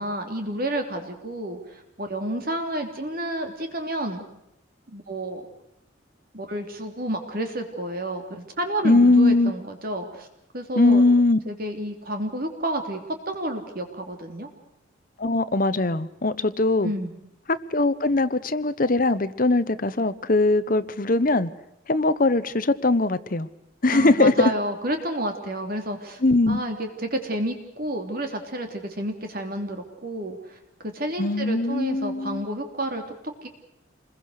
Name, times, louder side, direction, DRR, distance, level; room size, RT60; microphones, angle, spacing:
voice 1, 0.0-4.2 4.9-5.4 6.3-10.3 10.5-11.0 11.4-14.5 16.8-17.1 23.9-26.2 26.5-30.6 30.8-33.0 33.4-33.5, right 1 dB, 45° right, 3.2 m, -30 dB
voice 2, 8.8-9.5 10.7-11.4 15.2-16.9 17.5-21.5 21.9-23.5 23.8-24.5 26.2-26.6 31.2-32.5, left 2 dB, 45° left, 0.9 m, -20 dB
27.5 x 21.5 x 6.5 m
head